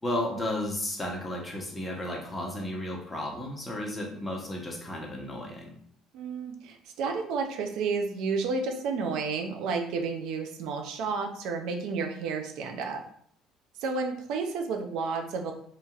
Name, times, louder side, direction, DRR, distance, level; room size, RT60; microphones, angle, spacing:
voice 1, 0.0-5.7, left 1 dB, 15° left, -1 dB, 0.9 m, -33 dB
voice 2, 6.1-13.0 13.8-15.5, right 4 dB, 75° right, 4 dB, 0.4 m, -31 dB
2.8 x 2.8 x 2.3 m, 0.64 s
supercardioid pair, 85°, 0 cm